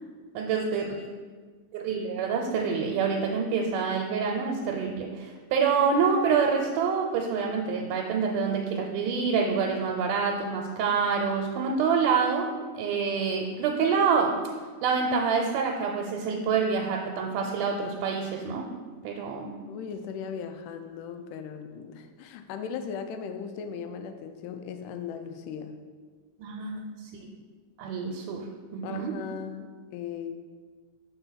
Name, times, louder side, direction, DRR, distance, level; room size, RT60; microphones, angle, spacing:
voice 1, 0.3-1.0 1.7-14.3 14.8-18.7 19.0-19.6 26.4-27.2 27.8-29.1, right 5 dB, 90° right, 1 dB, 2.2 m, -27 dB
voice 2, 19.7-25.8 28.8-30.4, left 7 dB, 90° left, 7 dB, 2.1 m, -38 dB
4.5 x 4.0 x 5.6 m, 1.5 s
omnidirectional pair, 3.6 m